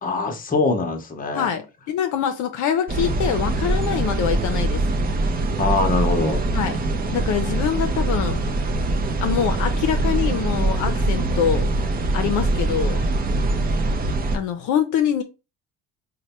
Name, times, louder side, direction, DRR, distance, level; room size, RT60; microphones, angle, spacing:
voice 1, 0.0-1.5 5.6-6.4, left 3 dB, 25° left, 0.8 m, -23 dB
voice 2, 1.3-4.8 6.5-6.8 7.1-8.4 9.2-11.7 12.1-13.0 14.3-15.2, left 8 dB, 60° left, 0.6 m, -24 dB
sound 1, 2.9-14.4, right 2 dB, 25° right, 0.6 m, -23 dB
3.2 x 2.2 x 4.1 m
cardioid pair, 115°, 34 cm